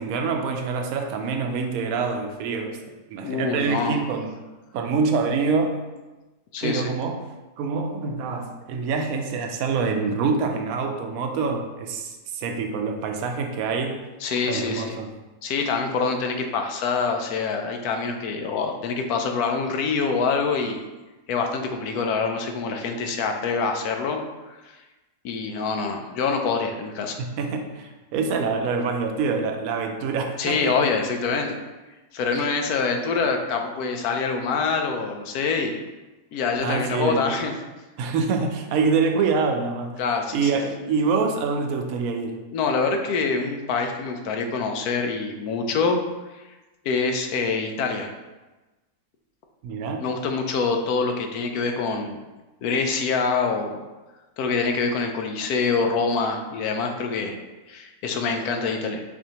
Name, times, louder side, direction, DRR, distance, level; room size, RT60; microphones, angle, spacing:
voice 1, 0.0-4.3 4.7-5.8 6.6-7.2 7.6-14.0 14.5-15.1 27.2-30.7 32.4-32.5 36.6-37.3 38.0-40.0 40.3-42.4 49.6-50.1, right 4 dB, 70° right, 4 dB, 1.0 m, -26 dB
voice 2, 3.2-4.0 6.5-6.9 14.2-15.0 15.4-20.8 21.3-24.2 24.5-24.6 25.2-27.2 30.4-31.6 32.1-35.8 36.3-37.5 40.0-40.5 42.5-46.0 46.8-48.1 50.0-52.2 52.6-53.8 54.4-57.4 57.7-59.0, left 4 dB, 75° left, 4 dB, 1.1 m, -25 dB
6.2 x 2.6 x 2.9 m, 1.1 s
omnidirectional pair, 1.7 m